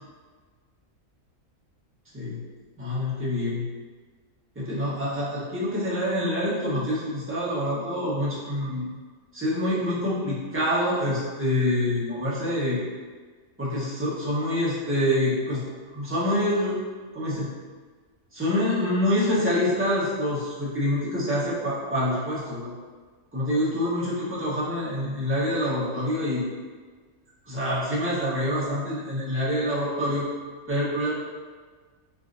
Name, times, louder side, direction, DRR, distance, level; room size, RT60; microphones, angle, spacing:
voice 1, 2.8-3.6 4.6-8.9 9.3-12.8 13.6-15.6 15.9-16.8 17.1-17.5 18.3-22.7 23.3-26.4 27.5-30.3 30.7-31.1, left 1 dB, 15° right, -9 dB, 0.5 m, -26 dB
3.4 x 2.5 x 2.4 m, 1.5 s
omnidirectional pair, 1.4 m